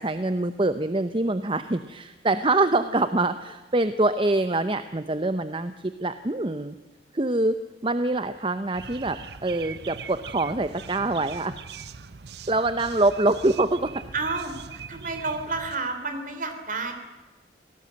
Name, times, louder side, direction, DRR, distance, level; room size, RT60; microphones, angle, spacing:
voice 1, 0.0-6.8 7.1-7.6 7.8-11.6 12.5-14.0, right 2 dB, 30° right, 11 dB, 0.8 m, -25 dB
sound 1, 8.7-15.8, right 6 dB, 70° right, 0.7 m, -41 dB
voice 2, 14.1-16.9, right 3 dB, 45° right, 7 dB, 3.7 m, -31 dB
26.0 x 18.5 x 7.8 m, 1.2 s
head